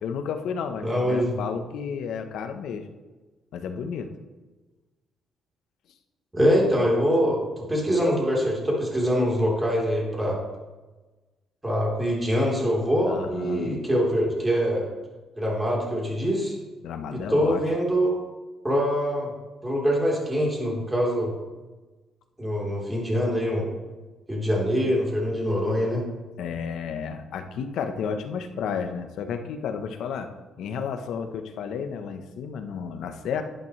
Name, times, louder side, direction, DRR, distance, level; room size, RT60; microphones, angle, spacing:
voice 1, 0.0-2.9 3.5-4.1 13.1-13.7 16.8-17.6 26.4-30.3 30.6-33.4, left 6 dB, 80° left, 7 dB, 1.0 m, -32 dB
voice 2, 0.8-1.4 6.3-10.4 11.6-14.8 15.4-16.5 17.1-18.1 18.6-19.3 19.6-21.3 22.4-23.6 24.3-26.0, equal, 15° right, -3 dB, 3.8 m, -24 dB
11.0 x 10.5 x 3.3 m, 1.2 s
cardioid pair, 90°, 0 cm